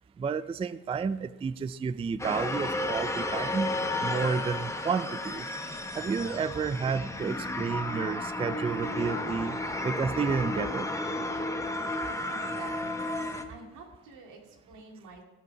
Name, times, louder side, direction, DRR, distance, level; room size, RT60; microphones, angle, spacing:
voice 1, 0.2-3.7 4.0-5.5 5.9-9.6 9.8-10.9, right 5 dB, 20° right, 15 dB, 0.3 m, -31 dB
sound 1, 2.2-13.4, left 2 dB, 10° left, 1.0 m, -33 dB
voice 2, 12.3-13.0 13.5-15.2, right 3 dB, 85° right, 1 dB, 2.4 m, -48 dB
16.0 x 5.4 x 5.7 m, 1.0 s
cardioid pair, 90°, 30 cm